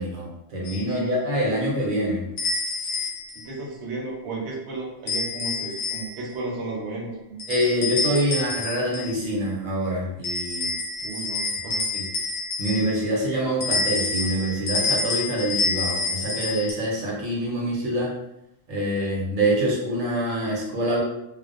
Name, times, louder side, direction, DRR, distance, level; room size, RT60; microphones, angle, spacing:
voice 1, 0.0-2.2 7.5-10.7 11.9-12.0 12.6-18.1 18.7-21.0, right 1 dB, 85° right, -3 dB, 1.1 m, -25 dB
sound 1, 0.6-0.9 2.4-3.4 5.1-6.3 7.4-9.2 10.2-13.1 13.6-16.7, left 3 dB, 65° left, 0.7 m, -28 dB
voice 2, 3.4-7.4 11.0-11.9, right 2 dB, 65° right, -4 dB, 0.9 m, -33 dB
2.4 x 2.1 x 2.4 m, 0.85 s
omnidirectional pair, 1.3 m